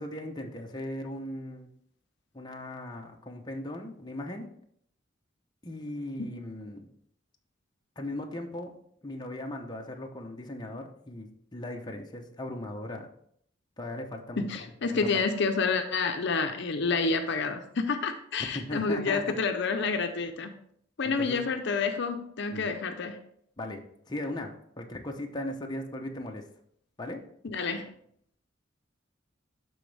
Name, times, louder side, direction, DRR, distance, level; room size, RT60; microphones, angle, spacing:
voice 1, 0.0-1.7 2.3-4.5 5.6-6.9 8.0-8.7 9.0-13.1 13.8-14.5 14.9-15.2 18.4-19.3 21.0-21.4 22.5-22.8 23.6-26.5 27.0-27.2, left 1 dB, 20° left, 2 dB, 0.8 m, -38 dB
voice 2, 14.4-20.5 21.0-23.2 27.4-27.9, left 4 dB, 65° left, 7 dB, 0.6 m, -29 dB
11.5 x 3.9 x 3.3 m, 0.67 s
head